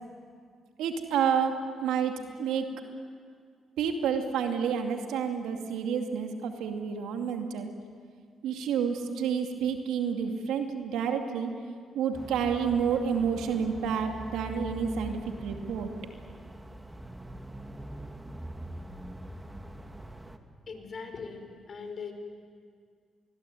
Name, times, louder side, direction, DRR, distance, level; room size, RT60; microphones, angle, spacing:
voice 1, 0.8-1.6 1.8-2.7 3.8-7.7 8.4-11.5 11.9-15.9, right 7 dB, 85° right, 4 dB, 2.4 m, -29 dB
sound 1, 12.1-20.4, right 1 dB, 15° right, 2.3 m, -43 dB
voice 2, 20.7-21.4 21.7-22.1, left 5 dB, 50° left, 6 dB, 4.7 m, -39 dB
26.0 x 20.5 x 9.6 m, 2.1 s
supercardioid pair, 50°, 0 cm